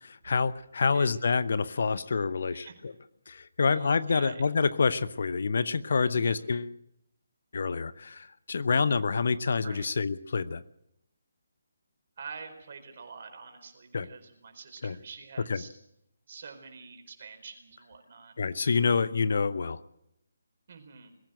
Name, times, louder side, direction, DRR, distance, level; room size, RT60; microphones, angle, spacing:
voice 1, 0.0-2.9 3.3-6.7 7.5-10.6 13.9-14.1 14.8-15.0 15.5-15.6 18.4-19.8, left 5 dB, 50° left, 15 dB, 0.8 m, -27 dB
voice 2, 0.9-1.2 2.5-2.8 3.7-4.5 6.1-6.4 9.6-9.9 12.2-15.8 16.3-18.4 20.7-21.1, right 5 dB, 45° right, 5 dB, 4.5 m, -47 dB
22.0 x 15.0 x 7.9 m, 0.77 s
figure-of-eight pair, 145°, 0 cm